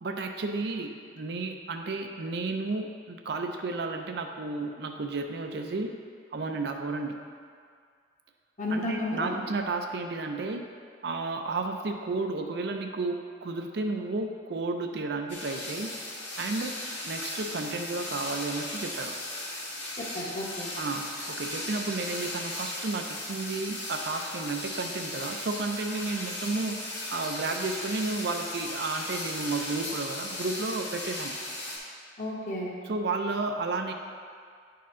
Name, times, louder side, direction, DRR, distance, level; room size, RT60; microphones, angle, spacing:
voice 1, 0.0-5.9 6.3-7.2 8.7-10.6 11.0-15.9 16.4-16.8 17.0-19.2 20.8-26.8 27.1-31.3 32.8-33.9, right 3 dB, 60° right, 4 dB, 0.5 m, -32 dB
voice 2, 8.6-9.4 20.0-20.7 32.2-32.7, left 1 dB, 40° left, -3 dB, 1.1 m, -32 dB
sound 1, 15.3-31.8, left 1 dB, 70° left, 1.7 m, -37 dB
9.4 x 4.3 x 3.7 m, 2.1 s
head